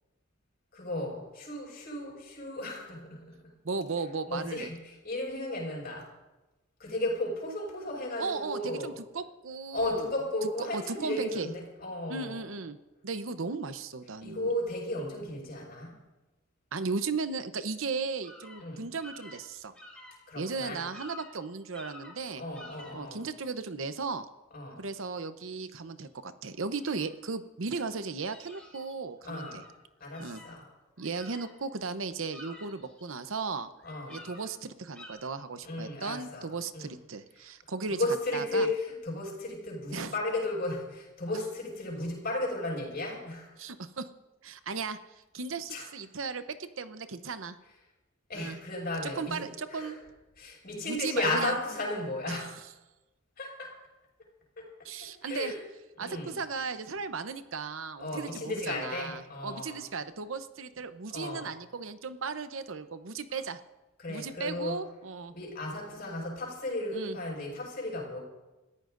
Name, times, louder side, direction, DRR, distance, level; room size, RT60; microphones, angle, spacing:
voice 1, 0.7-3.4 4.3-6.1 6.8-8.9 9.7-12.4 14.2-16.0 18.6-18.9 20.3-20.8 22.4-23.2 24.5-24.8 29.2-29.6 30.0-30.6 33.8-34.2 35.6-36.5 36.7-36.9 37.9-43.6 45.7-45.8 48.3-49.4 49.7-50.0 50.4-52.5 53.4-53.7 54.6-54.7 55.2-55.6 56.0-56.3 58.0-59.8 61.1-61.5 64.0-64.8 65.3-68.2, left 1 dB, 45° left, -2 dB, 5.6 m, -34 dB
voice 2, 3.6-4.7 8.2-10.1 10.4-11.5 12.1-12.8 13.0-14.5 16.7-19.7 20.4-22.4 22.9-24.3 24.8-29.6 30.2-30.4 31.0-33.7 34.1-38.0 38.3-38.7 39.9-40.1 43.6-44.1 44.4-45.0 45.3-47.6 48.3-48.6 49.0-50.0 50.8-51.6 52.3-52.5 54.8-55.5 56.0-63.6 64.1-65.3 66.9-67.2, right 4 dB, 65° right, 11 dB, 0.8 m, -36 dB
sound 1, 18.2-18.6 19.0-20.2 20.6-20.7 20.9-21.3 21.7-22.2 22.5-22.9 25.6-25.7 26.0-26.1 26.8-27.1 27.8-28.9 29.3-29.7 30.1-31.8 32.1-33.4 33.8-34.4 34.9-35.1, left 1 dB, 5° left, 3.8 m, -50 dB
29.0 x 14.5 x 2.6 m, 1.1 s
head